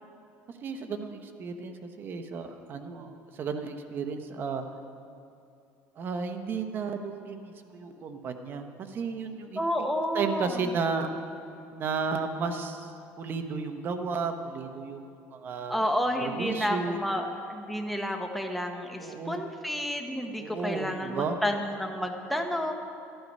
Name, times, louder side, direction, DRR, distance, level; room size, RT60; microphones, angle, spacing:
voice 1, 0.6-4.6 6.0-9.6 10.1-11.1 11.7-12.9 13.2-15.0 15.3-15.8 16.2-17.0 19.0-19.5 20.4-21.4, right 5 dB, 40° right, 6 dB, 1.0 m, -33 dB
voice 2, 9.6-10.5 15.7-22.7, equal, ahead, 3 dB, 0.9 m, -30 dB
13.0 x 11.5 x 5.4 m, 2.6 s
cardioid pair, 140°, 6 cm